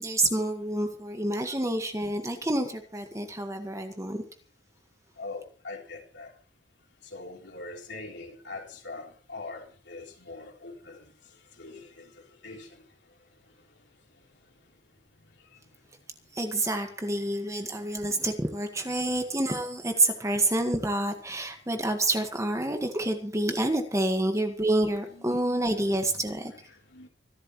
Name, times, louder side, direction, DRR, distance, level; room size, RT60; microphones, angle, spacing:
voice 1, 0.0-4.2 16.3-26.5, right 1 dB, 15° right, 5 dB, 1.7 m, -28 dB
voice 2, 5.2-6.3 7.0-11.0 11.6-12.0 12.4-12.7 25.1-25.3 26.2-27.1, left 3 dB, 75° left, 1 dB, 3.6 m, -42 dB
25.0 x 12.5 x 3.2 m, 0.38 s
head